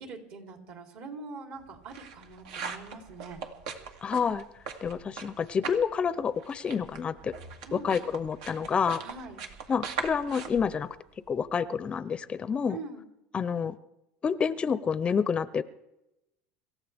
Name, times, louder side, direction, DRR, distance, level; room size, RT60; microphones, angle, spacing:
voice 1, 0.1-3.4 7.7-8.0 9.0-9.4 12.7-13.1, right 4 dB, 60° right, 2 dB, 3.5 m, -43 dB
sound 1, 1.6-5.9 6.2-11.5, right 5 dB, 80° right, 2.0 m, -40 dB
voice 2, 4.0-4.4 4.8-7.3 7.7-9.0 9.7-10.9 11.3-12.8 13.3-13.7 14.2-15.6, left 6 dB, 25° left, 15 dB, 0.6 m, -28 dB
26.5 x 14.5 x 3.5 m, 0.91 s
supercardioid pair, 125°, 4 cm